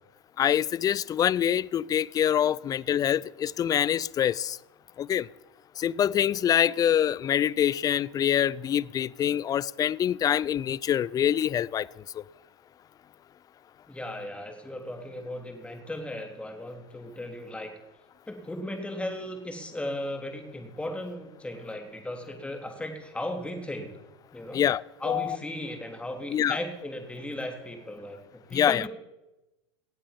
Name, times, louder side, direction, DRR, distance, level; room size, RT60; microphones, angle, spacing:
voice 1, 0.4-4.6 5.0-5.3 5.8-11.9 12.2-12.3 24.5-25.4 26.3-26.6 28.5-28.9, left 10 dB, 25° left, 0.4 m, -25 dB
voice 2, 13.9-17.7 18.3-23.9 24.3-24.6 25.0-28.9, left 1 dB, 10° left, 3.2 m, -36 dB
18.0 x 8.8 x 7.3 m
hypercardioid pair, 100°, 14 cm